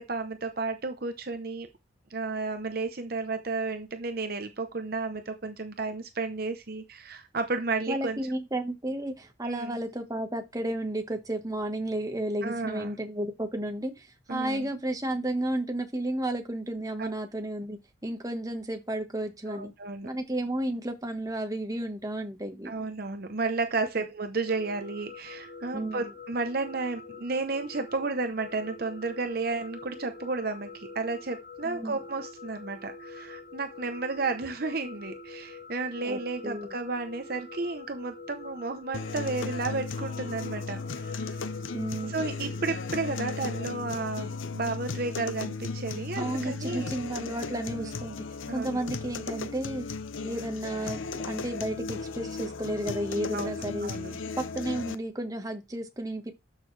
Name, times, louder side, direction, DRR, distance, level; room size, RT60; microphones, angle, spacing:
voice 1, 0.0-1.7 2.1-8.2 9.4-9.8 12.4-13.0 14.3-14.7 17.0-17.1 19.5-20.1 22.6-41.4 42.0-46.9 47.7-47.9 48.5-48.8 53.3-53.5 53.8-54.2, right 3 dB, 50° right, 0.9 m, -32 dB
voice 2, 7.9-19.7 20.0-22.7 25.7-26.1 31.6-31.9 36.0-36.7 41.7-42.2 46.2-48.2 48.5-49.8 50.2-53.9 54.4-56.3, right 1 dB, 20° right, 1.4 m, -32 dB
sound 1, 24.5-44.0, left 4 dB, 45° left, 2.6 m, -45 dB
sound 2, 38.9-55.0, left 4 dB, 85° left, 0.8 m, -36 dB
12.5 x 6.4 x 3.3 m
head